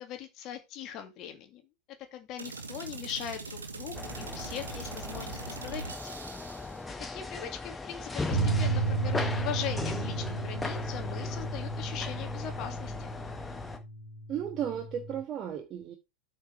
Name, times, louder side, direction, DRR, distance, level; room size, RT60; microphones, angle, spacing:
voice 1, 0.0-1.6 2.1-6.2 7.1-13.1, left 10 dB, 35° left, 2.3 m, -40 dB
sound 1, 2.4-6.8, right 4 dB, 70° right, 1.9 m, -42 dB
sound 2, 3.9-13.8, left 3 dB, 10° left, 1.4 m, -38 dB
sound 3, 8.3-15.2, right 2 dB, 85° right, 2.1 m, -33 dB
voice 2, 14.3-15.9, right 9 dB, 30° right, 1.4 m, -34 dB
8.8 x 5.4 x 4.7 m
figure-of-eight pair, 90°, 0 cm